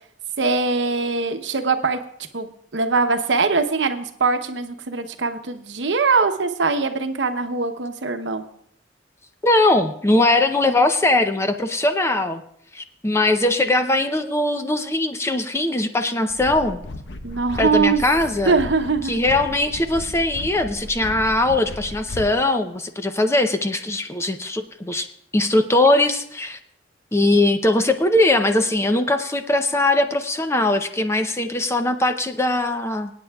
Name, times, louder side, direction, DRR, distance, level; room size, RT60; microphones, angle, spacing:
voice 1, 0.4-2.0 2.3-8.4 17.2-18.0 18.5-19.2, right 4 dB, 85° right, 7 dB, 0.9 m, -22 dB
voice 2, 9.4-12.4 12.7-16.8 17.6-18.6 19.0-25.1 25.3-26.6 27.1-33.1, left 2 dB, 15° left, 7 dB, 0.6 m, -20 dB
sound 1, 16.3-22.3, left 1 dB, 85° left, 0.9 m, -35 dB
24.5 x 9.1 x 2.4 m, 0.68 s
head